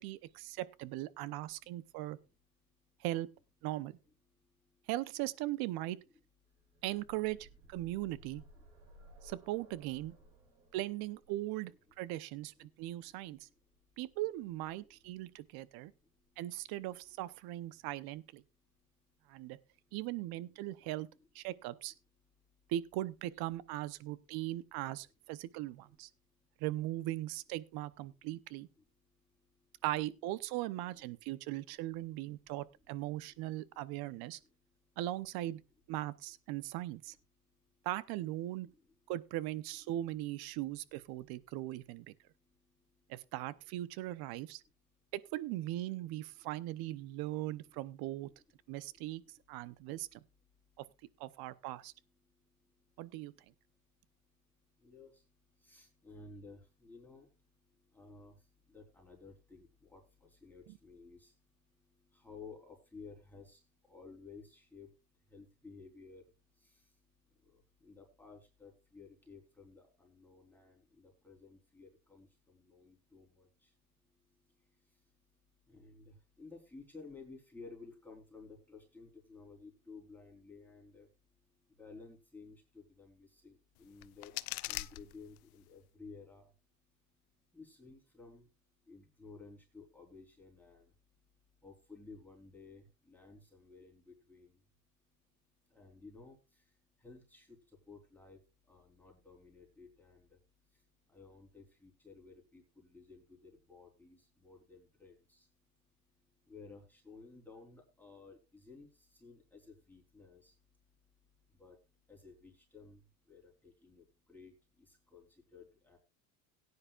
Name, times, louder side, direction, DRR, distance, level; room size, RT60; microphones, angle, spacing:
voice 1, 0.0-2.2 3.0-3.3 3.6-4.0 4.9-6.0 6.8-8.4 9.2-10.1 10.7-11.7 12.0-13.5 14.0-15.9 16.4-18.4 19.3-19.6 19.9-21.1 21.3-21.9 22.7-26.1 26.6-28.7 29.8-34.4 35.0-35.6 35.9-37.1 37.8-38.7 39.1-42.1 43.1-44.6 45.1-48.3 48.7-49.2 49.5-50.2 50.8-50.9 51.2-51.9 53.0-53.3 60.7-60.8, right 15 dB, 60° right, 0.9 m, -39 dB
sound 1, 6.6-14.4 15.5-15.6 16.0-16.1, right 1 dB, 75° right, 5.4 m, -60 dB
voice 2, 55.6-57.2 57.9-58.3 58.7-60.0 60.4-61.3 62.2-63.6 63.9-64.9 65.3-66.2 67.8-70.7 71.0-72.3 72.7-73.5 75.7-76.0 76.4-81.1 81.8-83.5 83.8-84.3 84.7-86.5 87.5-88.4 88.9-90.8 91.6-92.8 93.1-94.5 95.7-96.3 97.0-97.5 97.9-98.4 98.7-100.2 101.1-104.2 104.4-105.4 106.5-108.4 108.7-108.9 109.2-110.5 111.6-111.7 112.1-113.0 113.3-114.0 114.3-114.5 115.1-115.2 115.5-116.0, left 4 dB, 5° left, 4.0 m, -54 dB
sound 2, 83.8-85.7, left 21 dB, 80° left, 0.7 m, -43 dB
17.5 x 9.8 x 2.4 m
supercardioid pair, 110°, 43 cm